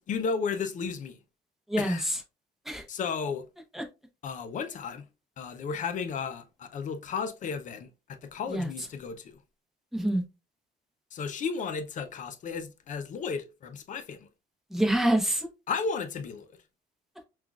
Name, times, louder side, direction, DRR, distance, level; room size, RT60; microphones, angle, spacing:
voice 1, 0.1-1.2 1.8-2.1 2.9-3.4 4.2-5.0 5.4-7.9 8.2-9.3 11.1-14.2 15.7-16.5, left 5 dB, 50° left, 0.6 m, -33 dB
voice 2, 1.7-2.2 2.6-2.8 3.7-3.8 8.5-8.7 9.9-10.2 14.7-15.5, right 1 dB, ahead, 1.0 m, -26 dB
5.7 x 2.5 x 2.4 m
cardioid pair, 110°, 17 cm